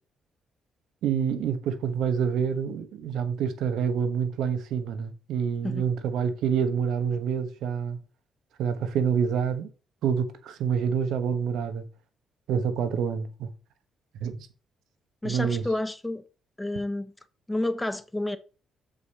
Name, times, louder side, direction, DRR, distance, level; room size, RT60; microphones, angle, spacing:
voice 1, 1.0-8.0 8.6-9.7 10.0-11.8 12.5-13.5 14.2-14.5 15.2-15.6, right 7 dB, 80° right, 1.3 m, -27 dB
voice 2, 15.2-16.2 16.6-17.1 17.5-18.4, left 1 dB, 10° left, 0.8 m, -30 dB
7.2 x 5.2 x 4.2 m
cardioid pair, 90°, 0 cm